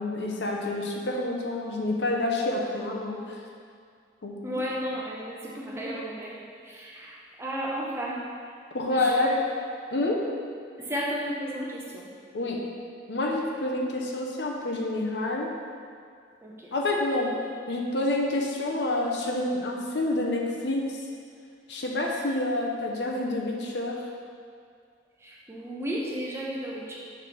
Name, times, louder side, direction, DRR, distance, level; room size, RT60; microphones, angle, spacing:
voice 1, 0.0-3.4 4.2-4.6 8.7-9.3 9.9-10.2 12.3-12.6 13.1-15.5 16.7-17.3 17.7-21.0 21.7-24.0, left 2 dB, 65° left, -1 dB, 0.8 m, -28 dB
voice 2, 4.4-6.4 6.7-7.1 7.4-8.2 8.9-9.2 10.9-12.1 16.4-16.5 25.2-26.9, equal, 15° right, -4 dB, 0.8 m, -33 dB
6.5 x 4.9 x 4.1 m, 2.2 s
head